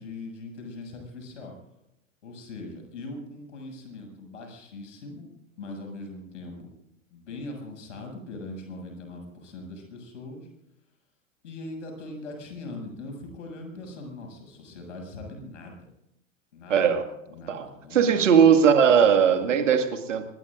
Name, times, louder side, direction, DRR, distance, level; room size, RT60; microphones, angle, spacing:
voice 1, 0.0-1.5 2.2-5.3 5.6-6.7 7.1-10.5 11.4-15.8 16.5-16.8 17.3-18.5, left 2 dB, 65° left, 2 dB, 7.1 m, -40 dB
voice 2, 16.7-17.0 17.5-20.2, right 7 dB, 70° right, 6 dB, 2.2 m, -19 dB
26.0 x 20.5 x 2.6 m, 0.86 s
figure-of-eight pair, 80°, 39 cm